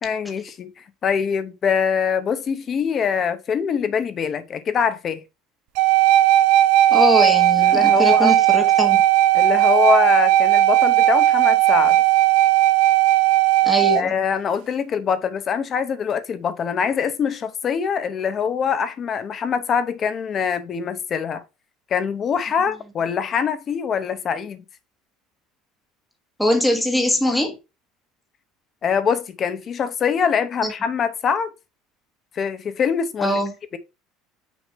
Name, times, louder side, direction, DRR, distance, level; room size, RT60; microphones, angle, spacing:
voice 1, 0.0-5.2 7.6-8.3 9.3-12.0 13.9-21.4 21.9-24.6 28.8-31.5 32.3-33.4, left 6 dB, 30° left, 0.7 m, -23 dB
sound 1, 5.8-14.0, right 14 dB, 70° right, 0.5 m, -16 dB
voice 2, 6.9-9.0 13.6-14.1 26.4-27.6 30.6-30.7 33.2-33.5, left 1 dB, ahead, 1.2 m, -21 dB
6.1 x 3.2 x 5.4 m
cardioid pair, 165°, 0 cm